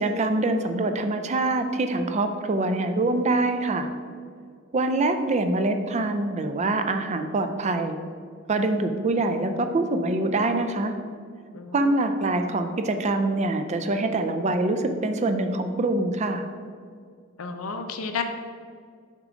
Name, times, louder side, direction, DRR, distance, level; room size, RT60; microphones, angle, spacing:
voice 1, 0.0-3.9 4.7-8.0 8.5-10.9 11.7-16.4, right 2 dB, 35° right, 8 dB, 0.4 m, -24 dB
voice 2, 11.5-12.0 17.4-18.2, left 5 dB, 85° left, 6 dB, 0.6 m, -32 dB
6.5 x 3.7 x 5.0 m, 2.1 s
head